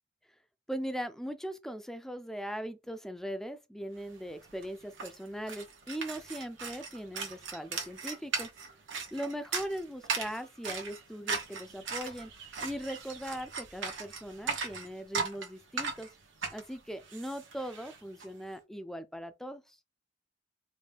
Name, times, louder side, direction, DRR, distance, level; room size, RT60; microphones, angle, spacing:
voice 1, 0.7-8.5 9.1-12.3 12.6-16.1 16.5-19.8, equal, ahead, 0.4 m, -39 dB
sound 1, 4.1-4.2 4.4-18.3, right 5 dB, 85° right, 1.0 m, -38 dB
4.1 x 2.2 x 3.3 m
head